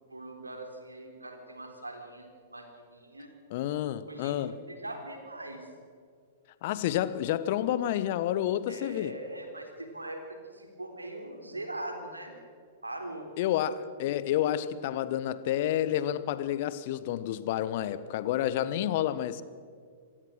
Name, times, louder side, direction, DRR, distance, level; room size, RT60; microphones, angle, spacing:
voice 1, 0.1-3.3 4.1-5.7 8.7-12.3 12.8-13.3, right 1 dB, 80° right, 3.7 m, -41 dB
voice 2, 3.5-4.6 6.6-9.2 13.4-19.4, left 11 dB, 45° left, 1.0 m, -29 dB
27.0 x 16.5 x 6.6 m
figure-of-eight pair, 105°, 0 cm